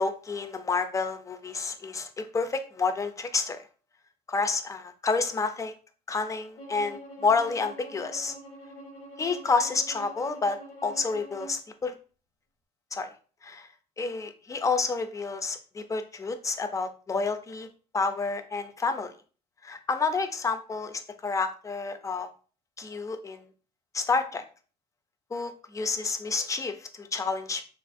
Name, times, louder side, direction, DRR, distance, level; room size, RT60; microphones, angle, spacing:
voice 1, 0.0-3.6 4.3-5.7 6.1-8.3 9.2-11.9 12.9-13.1 13.4-13.7 14.0-17.7 17.9-19.1 19.6-22.3 22.8-23.5 23.9-24.4 25.3-27.7, left 4 dB, 20° left, 8 dB, 0.4 m, -29 dB
Bowed string instrument, 6.6-11.6, right 1 dB, 75° left, 0.9 m, -45 dB
3.1 x 2.4 x 2.5 m, 0.38 s
cardioid pair, 110°, 17 cm